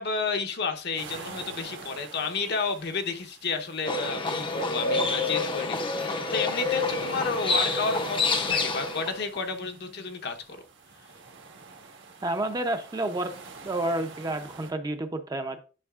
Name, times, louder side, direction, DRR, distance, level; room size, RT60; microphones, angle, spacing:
voice 1, 0.0-10.6, left 4 dB, 60° left, 0.9 m, -31 dB
sound 1, 1.0-14.7, right 4 dB, 70° right, 1.3 m, -46 dB
Livestock farm animals working animals, 3.8-9.2, left 3 dB, 25° left, 0.6 m, -28 dB
voice 2, 12.2-13.3 13.6-15.6, right 1 dB, 20° right, 0.6 m, -30 dB
9.7 x 5.7 x 2.4 m
head